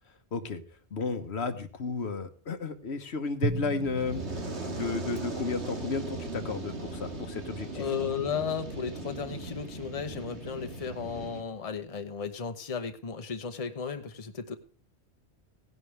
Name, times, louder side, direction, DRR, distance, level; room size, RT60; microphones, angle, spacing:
voice 1, 0.3-0.6 0.9-4.3 4.6-7.8, left 4 dB, 75° left, 8 dB, 1.4 m, -33 dB
Drum, 3.4-5.8, right 3 dB, 45° right, 0.8 m, -36 dB
Fire, 3.8-11.4, right 2 dB, 85° right, 2.4 m, -38 dB
voice 2, 7.7-14.6, left 6 dB, 35° left, 8 dB, 1.0 m, -34 dB
16.5 x 11.0 x 3.3 m, 0.38 s
omnidirectional pair, 1.1 m